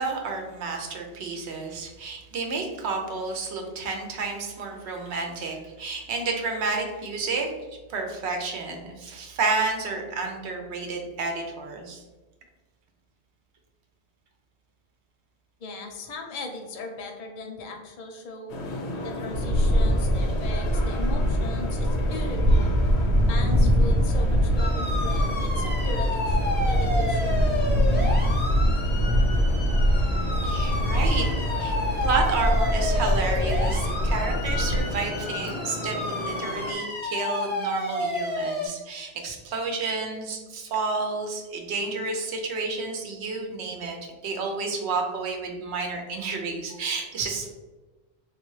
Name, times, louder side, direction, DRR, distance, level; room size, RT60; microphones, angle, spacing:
voice 1, 0.0-7.5 7.9-12.0 30.4-31.3 31.6-31.8 32.0-47.5, right 3 dB, 85° right, 2 dB, 0.9 m, -30 dB
voice 2, 15.6-18.6 19.0-22.8 23.3-27.5, left 2 dB, 55° left, 3 dB, 0.6 m, -38 dB
sagrada familia cathedral, 18.5-36.7, left 2 dB, 90° left, 0.8 m, -35 dB
sound 1, 19.3-34.8, equal, 55° right, 0.5 m, -23 dB
sound 2, 24.6-38.7, left 1 dB, 20° left, 0.3 m, -31 dB
3.4 x 2.3 x 3.1 m, 1.2 s
omnidirectional pair, 1.1 m